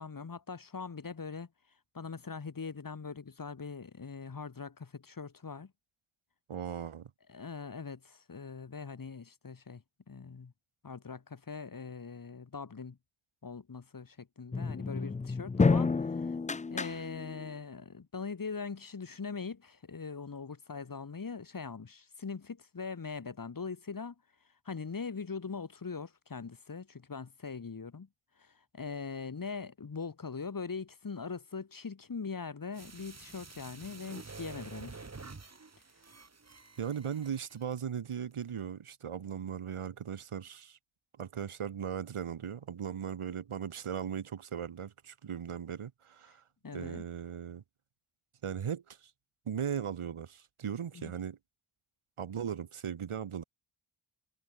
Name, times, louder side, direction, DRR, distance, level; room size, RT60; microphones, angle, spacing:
voice 1, 0.0-1.5 1.9-5.7 7.3-10.5 10.8-13.0 13.4-16.4 16.7-24.1 24.6-28.1 28.4-35.1 46.6-47.1 50.9-51.1, left 5 dB, 40° left, 4.5 m, -41 dB
voice 2, 6.5-7.1 36.8-40.8 41.2-46.4 46.7-47.6 48.4-49.1 49.5-51.4 52.2-53.4, right 8 dB, 85° right, 4.0 m, -38 dB
sound 1, 14.5-17.5, left 4 dB, 15° left, 0.3 m, -30 dB
sound 2, 32.7-37.8 38.1-38.2, right 4 dB, 30° right, 5.6 m, -49 dB
wide cardioid pair, 150°, 49 cm